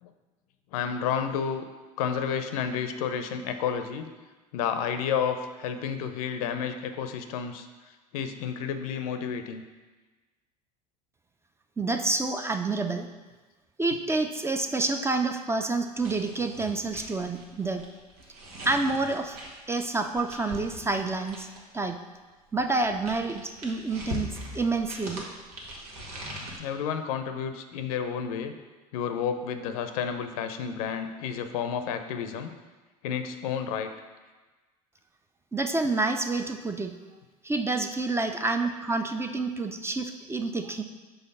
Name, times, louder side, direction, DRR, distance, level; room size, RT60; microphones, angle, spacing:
voice 1, 0.7-1.6 2.0-4.1 4.5-7.7 8.1-9.6 26.6-28.5 28.9-32.5 33.0-33.9, left 7 dB, 65° left, 8 dB, 0.6 m, -31 dB
voice 2, 11.8-13.1 13.8-17.8 18.7-19.4 19.7-21.5 21.7-22.0 22.5-25.3 35.5-36.9 37.4-40.8, right 3 dB, 15° right, 6 dB, 0.5 m, -28 dB
sound 1, 16.0-21.8 22.6-26.6, equal, 75° right, 1.3 m, -41 dB
5.6 x 3.8 x 5.4 m, 1.3 s
hypercardioid pair, 75°, 20 cm